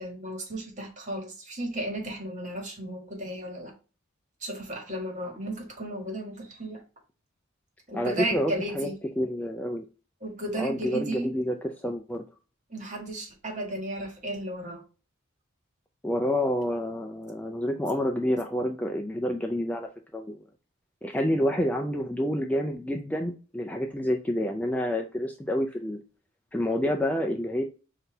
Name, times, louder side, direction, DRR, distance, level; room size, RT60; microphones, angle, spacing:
voice 1, 0.0-3.7 4.4-6.8 7.9-8.9 10.2-11.3 12.7-14.8, right 1 dB, 35° right, 1 dB, 1.7 m, -34 dB
voice 2, 7.9-8.9 9.2-9.8 10.6-12.3 16.0-20.4 21.0-26.0 26.5-27.6, equal, 5° left, 2 dB, 0.4 m, -28 dB
5.7 x 2.8 x 3.3 m, 0.34 s
head